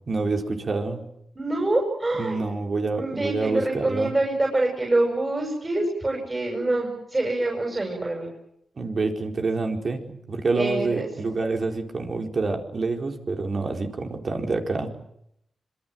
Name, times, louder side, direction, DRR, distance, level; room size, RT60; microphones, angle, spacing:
voice 1, 0.1-1.1 2.2-4.1 8.8-10.0 10.3-14.9, right 3 dB, 50° right, 3 dB, 4.4 m, -27 dB
voice 2, 1.4-2.4 3.0-8.3 10.5-11.1, right 2 dB, 25° right, 0 dB, 7.2 m, -25 dB
26.0 x 24.0 x 7.7 m, 0.76 s
cardioid pair, 70°, 0 cm